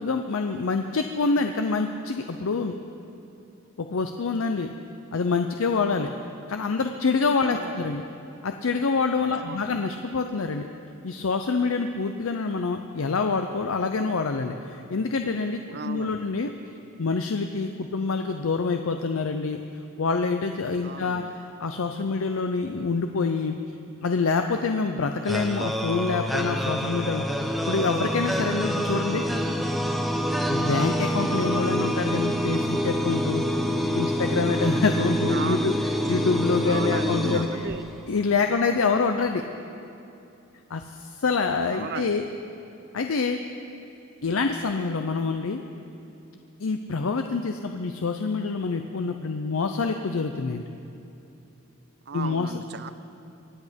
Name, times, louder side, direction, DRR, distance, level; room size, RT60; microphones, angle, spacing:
voice 1, 0.0-2.7 3.8-4.7 5.1-6.1 6.5-8.0 8.4-10.7 11.0-16.5 17.0-19.6 20.0-23.5 24.0-29.2 30.5-33.4 33.9-35.7 36.1-37.6 38.1-39.4 40.7-42.2 42.9-43.4 44.2-45.6 46.6-50.6 52.1-52.5, left 4 dB, 65° left, 6 dB, 0.6 m, -26 dB
voice 2, 7.4-7.9 9.3-9.7 15.7-16.2 20.8-21.3 29.0-29.6 35.2-35.7 36.0-36.1 36.6-37.9 41.7-42.2 52.1-52.9, right 5 dB, 50° right, 12 dB, 0.6 m, -36 dB
sound 1, 25.3-38.2, equal, ahead, 0.7 m, -26 dB
23.5 x 8.6 x 5.2 m, 2.8 s
head